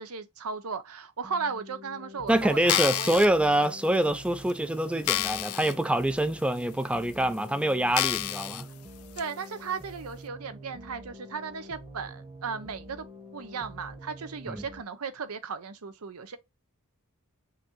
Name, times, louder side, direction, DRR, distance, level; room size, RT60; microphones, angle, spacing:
voice 1, 0.0-3.2 9.2-13.1 13.3-16.4, right 5 dB, 85° right, 0.7 m, -36 dB
sound 1, 1.2-14.8, equal, 30° right, 1.1 m, -46 dB
voice 2, 2.3-8.7 14.5-14.6, right 1 dB, 5° right, 0.3 m, -25 dB
sound 2, 2.6-3.3 3.9-4.0 4.5-4.6 5.0-5.7 6.2-6.3 7.0-7.1 7.9-8.6 9.2-9.3, left 13 dB, 75° left, 0.5 m, -28 dB
5.8 x 2.7 x 2.9 m
head